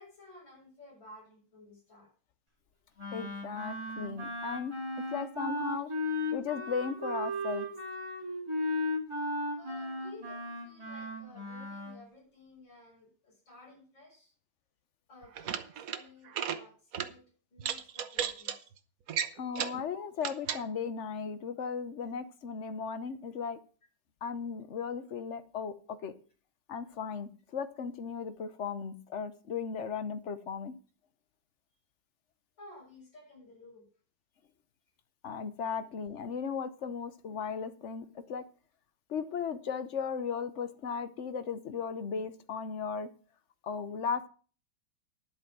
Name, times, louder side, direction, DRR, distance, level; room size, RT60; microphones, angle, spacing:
voice 1, 0.0-2.1 5.9-6.0 9.6-14.3 15.1-17.2 17.5-18.6 19.9-20.0 22.0-22.1 32.6-33.9, left 2 dB, 75° left, -5 dB, 7.6 m, -54 dB
Wind instrument woodwind instrument, 3.0-12.0, left 1 dB, 15° right, 3.2 m, -36 dB
voice 2, 3.1-4.8 5.1-5.9 6.3-7.7 19.4-23.6 24.2-26.1 26.7-30.7 35.2-38.4 39.1-43.1 43.6-44.3, left 6 dB, 50° left, 12 dB, 1.0 m, -36 dB
sound 1, 15.2-16.0 16.3-16.6 16.9-17.1 17.6-18.6 19.1-19.8 20.2-20.6, right 8 dB, 55° right, 1.2 m, -34 dB
10.5 x 8.1 x 6.0 m, 0.39 s
omnidirectional pair, 2.1 m